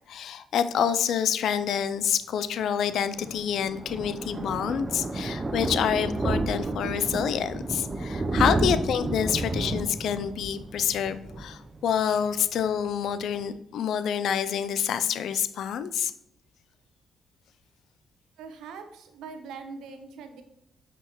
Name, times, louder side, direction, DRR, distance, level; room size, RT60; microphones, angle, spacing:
voice 1, 0.1-16.1, left 8 dB, 70° left, 13 dB, 0.5 m, -27 dB
Thunder, 2.9-12.3 12.6-12.8 13.1-13.2 13.4-13.5, right 2 dB, 25° right, 0.7 m, -31 dB
voice 2, 18.4-20.4, right 5 dB, 85° right, 7 dB, 1.0 m, -42 dB
8.1 x 6.0 x 3.1 m, 0.81 s
cardioid pair, 90°, 0 cm